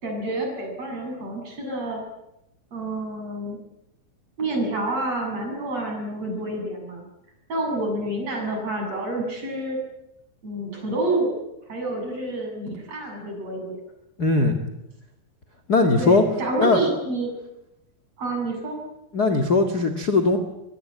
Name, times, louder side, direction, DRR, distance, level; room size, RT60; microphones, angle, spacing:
voice 1, 0.0-2.0 2.7-3.6 4.4-7.0 7.5-9.8 10.4-11.3 11.7-13.8 16.0-17.3 18.2-18.8, right 2 dB, 45° right, 1 dB, 8.6 m, -28 dB
voice 2, 14.2-14.6 15.7-16.2 16.6-16.8 19.1-20.4, left 3 dB, 35° left, 6 dB, 2.0 m, -19 dB
25.0 x 22.0 x 9.0 m, 0.87 s
omnidirectional pair, 4.3 m